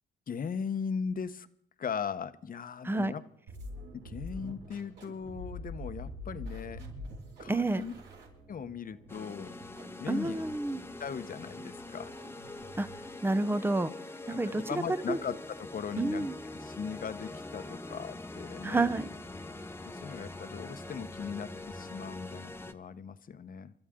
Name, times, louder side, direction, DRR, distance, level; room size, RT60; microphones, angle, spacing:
voice 1, 0.3-1.5 1.8-3.2 3.9-6.8 7.4-7.9 8.5-9.5 10.0-10.4 11.0-12.1 14.3-16.3 16.5-18.9 19.9-23.7, left 6 dB, 45° left, 12 dB, 1.0 m, -38 dB
sound 1, 3.5-13.2, left 1 dB, 65° right, 7.3 m, -46 dB
voice 2, 7.5-7.9 10.1-10.8 12.8-12.9 13.2-13.9 14.3-14.6 15.1-15.2 16.0-16.3 18.6-19.1, right 2 dB, 10° right, 14 dB, 0.8 m, -29 dB
sound 2, 9.1-22.7, left 2 dB, 10° left, 1.0 m, -44 dB
29.5 x 13.0 x 3.8 m, 0.67 s
cardioid pair, 90°, 20 cm